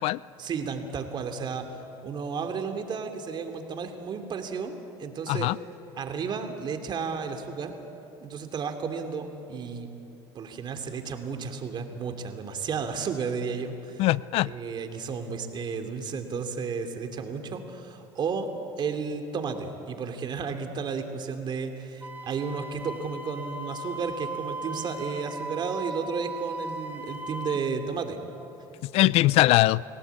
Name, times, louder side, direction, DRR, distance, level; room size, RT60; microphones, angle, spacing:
voice 1, 0.4-5.5 6.0-7.7 8.2-9.9 10.3-14.0 14.4-18.5 18.8-28.2 29.0-29.1, right 5 dB, 40° right, 6 dB, 2.8 m, -33 dB
voice 2, 5.3-5.6 14.0-14.5 28.8-29.8, left 17 dB, 60° left, 21 dB, 0.4 m, -21 dB
Wind instrument woodwind instrument, 22.0-27.7, right 2 dB, 15° right, 2.0 m, -38 dB
28.5 x 17.0 x 8.4 m, 3.0 s
supercardioid pair, 105°, 11 cm